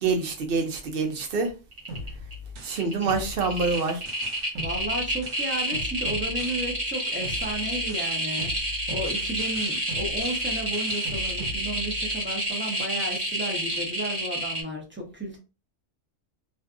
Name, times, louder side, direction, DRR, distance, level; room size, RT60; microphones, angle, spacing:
voice 1, 0.0-1.5 2.6-4.0, right 4 dB, 60° right, 0.7 m, -26 dB
sound 1, 1.2-1.5 1.7-2.3 2.7-14.6, right 1 dB, 35° right, 1.2 m, -29 dB
sound 2, 1.9-6.9 7.2-12.2, left 2 dB, 85° right, 1.1 m, -39 dB
voice 2, 4.6-15.4, right 1 dB, 15° right, 0.5 m, -33 dB
2.5 x 2.4 x 2.4 m
omnidirectional pair, 1.3 m